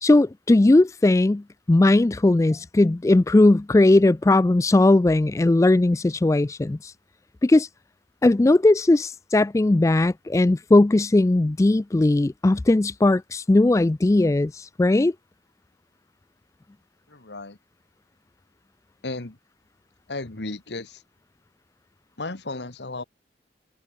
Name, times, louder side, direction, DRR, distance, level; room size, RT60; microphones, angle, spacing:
voice 1, 0.0-6.9 7.4-7.7 8.2-15.1, left 2 dB, 15° left, 0.3 m, -18 dB
voice 2, 17.1-17.6 19.0-19.4 20.1-21.0 22.2-23.0, left 2 dB, 80° left, 1.7 m, -34 dB
head